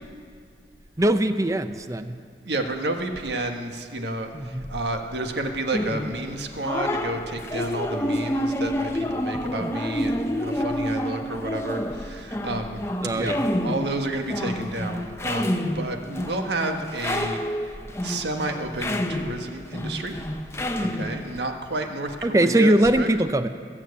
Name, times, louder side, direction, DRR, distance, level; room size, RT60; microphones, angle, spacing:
voice 1, 1.0-2.2 4.3-4.7 9.6-9.7 13.0-13.4 22.2-23.5, right 1 dB, 20° right, 10 dB, 0.5 m, -21 dB
voice 2, 2.4-12.9 13.1-13.3 13.6-17.8 18.0-20.2 20.8-23.1, right 2 dB, 80° right, 4 dB, 1.4 m, -31 dB
sound 1, 5.7-21.4, left 1 dB, 15° left, 0.7 m, -29 dB
21.0 x 7.5 x 8.3 m, 2.3 s
head